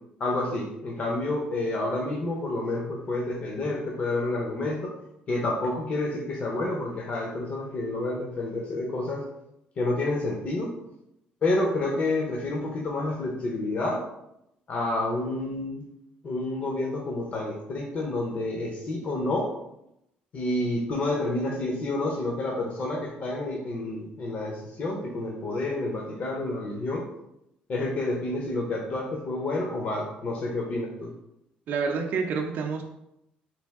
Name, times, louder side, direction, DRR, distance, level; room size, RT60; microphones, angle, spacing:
voice 1, 0.2-4.9 5.3-9.2 9.8-10.7 11.4-14.0 14.7-15.8 16.2-19.5 20.3-27.0 27.7-31.1, left 2 dB, 45° left, -1 dB, 0.6 m, -29 dB
voice 2, 31.7-32.8, right 5 dB, 60° right, 3 dB, 0.4 m, -28 dB
3.3 x 2.5 x 3.4 m, 0.83 s
cardioid pair, 110°, 3 cm